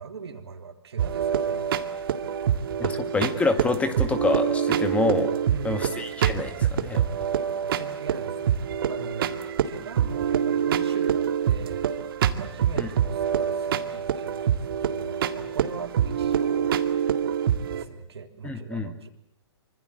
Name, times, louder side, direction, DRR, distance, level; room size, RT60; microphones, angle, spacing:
voice 1, 0.0-1.7 2.9-3.6 5.5-5.9 7.6-11.9 12.4-16.8 17.7-19.1, right 5 dB, 70° right, 6 dB, 3.5 m, -40 dB
sound 1, 1.0-17.8, right 9 dB, 55° right, 2.0 m, -26 dB
voice 2, 2.8-5.3 5.6-7.0 12.8-12.9 18.4-18.9, left 3 dB, 10° left, 9 dB, 2.0 m, -27 dB
25.5 x 25.0 x 8.0 m, 0.71 s
figure-of-eight pair, 125°, 14 cm